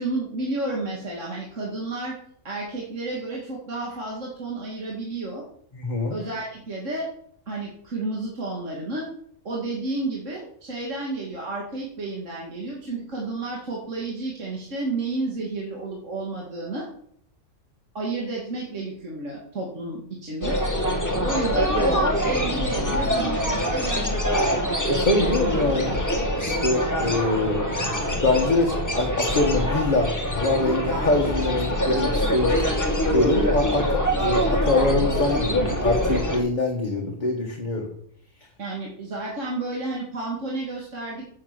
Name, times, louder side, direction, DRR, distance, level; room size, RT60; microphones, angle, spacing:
voice 1, 0.0-2.2 2.4-5.4 6.1-7.1 7.5-9.1 9.4-16.9 17.9-20.6 21.2-24.4 38.6-41.3, right 2 dB, 55° right, -3 dB, 2.6 m, -31 dB
voice 2, 5.7-6.2 24.9-25.9 26.4-28.0 28.2-32.6 33.1-37.9, left 2 dB, 30° left, 1 dB, 1.7 m, -24 dB
sound 1, 20.4-36.4, equal, 10° left, 2.0 m, -24 dB
10.5 x 7.7 x 7.6 m, 0.66 s
omnidirectional pair, 1.5 m